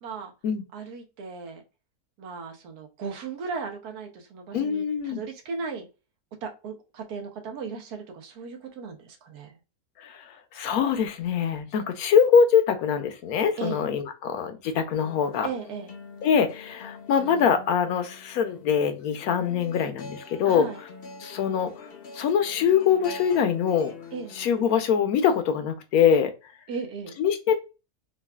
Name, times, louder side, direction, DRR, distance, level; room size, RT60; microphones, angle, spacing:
voice 1, 0.0-0.3 0.7-1.6 2.2-5.9 6.3-9.6 13.6-13.8 15.4-15.9 20.5-20.8 24.1-24.4 26.7-27.2, right 5 dB, 90° right, 3 dB, 1.3 m, -36 dB
voice 2, 4.5-5.2 10.0-10.2 10.5-15.5 16.2-20.7 21.2-21.7 22.1-23.9 24.3-26.3 27.2-27.6, left 7 dB, 75° left, 7 dB, 1.1 m, -23 dB
sound 1, 14.9-24.6, left 4 dB, 55° left, 0.7 m, -44 dB
3.9 x 2.3 x 2.2 m, 0.29 s
omnidirectional pair, 1.6 m